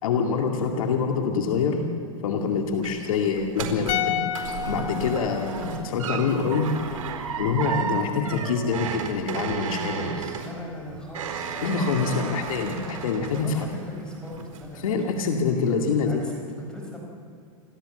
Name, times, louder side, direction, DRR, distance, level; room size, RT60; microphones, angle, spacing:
voice 1, 0.0-1.9 2.2-4.2 4.7-6.7 7.4-10.1 11.6-13.8 14.8-16.2, left 5 dB, 75° left, 3 dB, 2.2 m, -25 dB
sound 1, 2.4-14.0 14.3-14.8 15.2-15.3, right 6 dB, 80° right, 4.4 m, -33 dB
sound 2, 3.9-7.1 7.4-7.5, left 10 dB, 40° left, 1.2 m, -32 dB
voice 2, 9.8-12.8 13.2-15.1 15.4-17.0, equal, 5° left, -1 dB, 4.9 m, -40 dB
28.5 x 13.5 x 7.9 m, 2.4 s
supercardioid pair, 145°, 18 cm